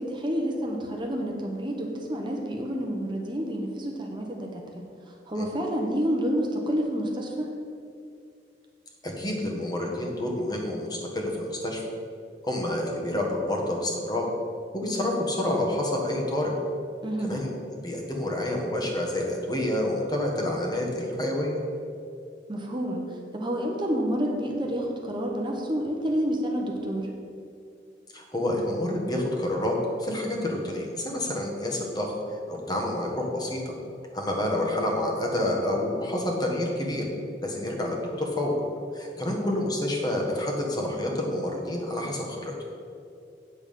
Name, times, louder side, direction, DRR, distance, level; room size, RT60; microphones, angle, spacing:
voice 1, 0.0-4.6 5.1-7.5 17.0-17.3 22.5-27.1 39.3-39.6, equal, 25° right, 0 dB, 1.0 m, -29 dB
voice 2, 9.2-11.8 12.4-14.3 14.7-16.5 17.2-21.6 28.1-32.1 32.5-33.6 34.1-37.1 37.4-38.5 38.9-42.5, left 1 dB, 25° left, 0 dB, 1.5 m, -28 dB
8.8 x 7.1 x 5.4 m, 2.5 s
head